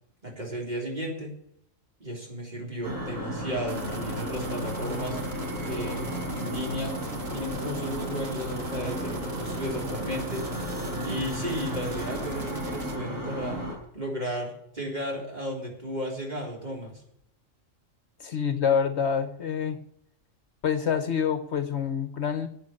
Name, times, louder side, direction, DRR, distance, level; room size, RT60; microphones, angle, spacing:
voice 1, 0.2-1.3 2.0-5.2 5.7-7.0 7.3-10.4 11.0-13.6 13.9-17.0, equal, 35° right, -2 dB, 3.9 m, -34 dB
sound 1, 2.8-13.8, equal, 85° right, 4.6 m, -34 dB
sound 2, 3.7-13.0, right 1 dB, 50° right, 2.1 m, -40 dB
voice 2, 18.2-19.8 20.6-22.5, left 7 dB, 60° left, 10 dB, 1.2 m, -26 dB
10.5 x 9.0 x 8.1 m, 0.70 s
omnidirectional pair, 1.3 m